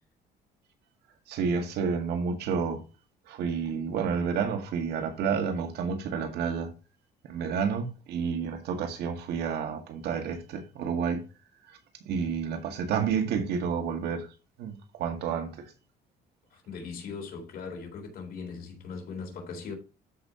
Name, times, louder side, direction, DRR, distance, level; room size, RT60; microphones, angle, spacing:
voice 1, 1.3-2.8 3.3-6.7 7.2-11.3 12.0-14.3 14.6-15.5, right 6 dB, 75° right, 1.9 m, -30 dB
voice 2, 16.5-19.7, left 5 dB, 65° left, 3.8 m, -39 dB
13.0 x 5.3 x 2.9 m
cardioid pair, 110°, 17 cm